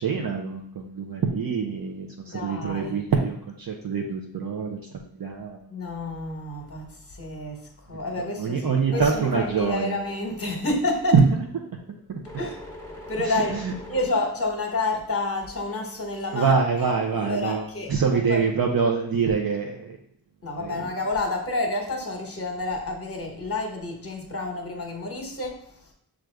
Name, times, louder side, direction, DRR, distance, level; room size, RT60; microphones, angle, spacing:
voice 1, 0.0-4.8 5.1-5.6 8.2-10.0 11.1-11.2 13.6-13.7 16.3-20.0 20.6-20.7, right 5 dB, 60° right, 0 dB, 0.6 m, -25 dB
voice 2, 2.3-3.0 5.7-11.2 12.4-12.6 13.1-13.6 13.9-16.5 16.9-18.4 20.4-25.9, left 2 dB, 35° left, 2 dB, 1.1 m, -29 dB
sound 1, 8.9-10.7 11.2-14.1, left 1 dB, 5° left, 0.9 m, -42 dB
6.1 x 2.5 x 3.3 m, 0.71 s
wide cardioid pair, 105°, 39 cm